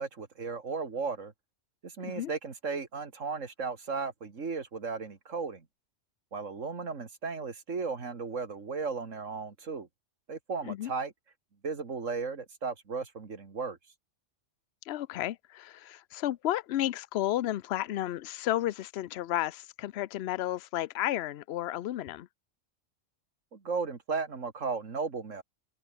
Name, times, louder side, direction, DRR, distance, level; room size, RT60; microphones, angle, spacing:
voice 1, 0.0-1.3 1.8-5.7 6.3-9.9 10.3-11.1 11.6-13.8 23.5-25.4, right 4 dB, 80° right, 2.6 m, -35 dB
voice 2, 2.0-2.3 10.7-10.9 14.9-22.3, left 13 dB, 65° left, 0.8 m, -32 dB
open air
omnidirectional pair, 1.3 m